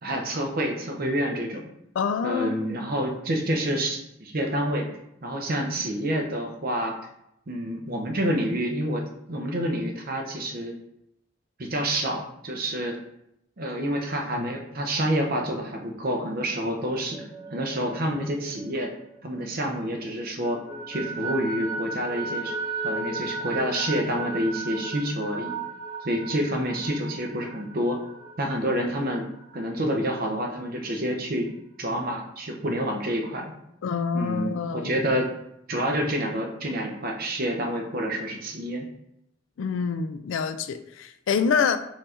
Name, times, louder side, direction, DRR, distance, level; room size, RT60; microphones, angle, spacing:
voice 1, 0.0-1.7 2.2-7.0 7.5-10.8 11.6-13.0 13.6-17.2 17.5-18.9 19.2-20.6 20.9-22.6 22.8-25.5 26.0-28.0 28.4-29.3 29.5-31.5 31.8-33.5 34.1-35.3 35.7-38.9, equal, 45° right, 2 dB, 0.7 m, -28 dB
voice 2, 2.0-2.5 33.8-34.9 39.6-41.8, left 6 dB, 70° left, 10 dB, 0.3 m, -26 dB
sound 1, 17.0-19.8 20.1-29.6, right 3 dB, 5° left, 1.0 m, -35 dB
4.5 x 2.5 x 4.2 m, 0.78 s
head